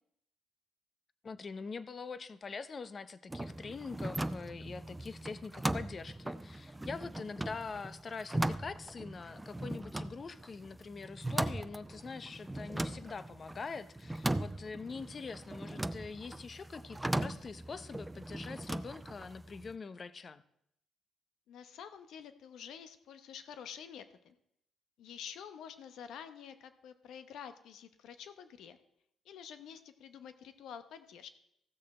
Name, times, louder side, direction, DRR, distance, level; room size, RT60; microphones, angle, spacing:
voice 1, 1.2-20.4, left 4 dB, 40° left, 14 dB, 0.6 m, -44 dB
sound 1, 3.3-19.7, right 1 dB, 10° right, 0.4 m, -39 dB
voice 2, 21.5-24.3 25.0-28.8 29.2-31.3, left 8 dB, 80° left, 10 dB, 0.8 m, -48 dB
15.5 x 6.5 x 4.3 m, 0.75 s
cardioid pair, 90°, 0 cm